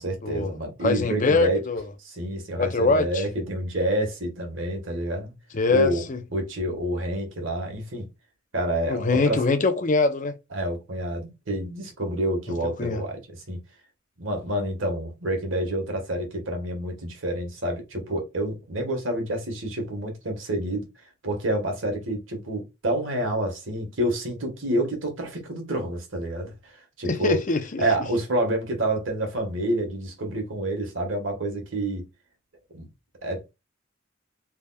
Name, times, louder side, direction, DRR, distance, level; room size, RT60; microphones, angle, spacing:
voice 1, 0.0-1.6 2.0-5.3 5.7-6.0 6.3-8.1 8.5-9.4 10.5-13.6 14.2-20.9 21.2-27.4 27.8-32.1 32.7-32.9 33.2-33.5, right 1 dB, 80° right, 1.4 m, -28 dB
voice 2, 0.8-1.8 2.6-3.2 5.5-6.2 8.9-10.3 12.5-13.0 27.1-27.8, left 3 dB, 40° left, 0.6 m, -23 dB
3.9 x 3.4 x 2.3 m
head